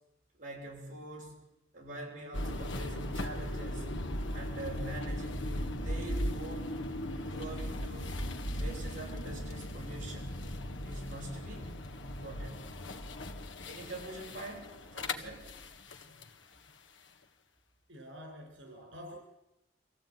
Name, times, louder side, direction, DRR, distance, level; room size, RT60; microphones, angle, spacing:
voice 1, 0.4-1.4 1.7-3.9 4.3-6.8 7.3-8.1 8.6-10.3 10.8-11.7 12.0-12.6 13.7-15.5, right 1 dB, 45° right, -2 dB, 7.8 m, -45 dB
sound 1, 2.3-16.3, left 1 dB, 75° left, 1.7 m, -38 dB
voice 2, 17.9-19.2, equal, 75° right, 1 dB, 5.2 m, -47 dB
24.5 x 15.5 x 9.3 m, 0.96 s
head